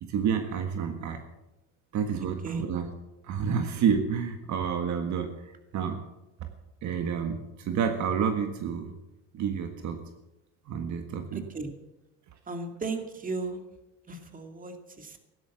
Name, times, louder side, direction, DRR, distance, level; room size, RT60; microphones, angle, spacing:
voice 1, 0.0-1.2 1.9-2.9 3.2-6.0 6.8-8.9 9.3-10.1 10.7-11.4, right 7 dB, 55° right, 6 dB, 1.7 m, -29 dB
voice 2, 11.3-11.7 12.5-13.6 14.1-15.2, right 3 dB, 25° right, 5 dB, 2.3 m, -36 dB
16.5 x 11.5 x 7.2 m, 0.98 s
cardioid pair, 110°, 34 cm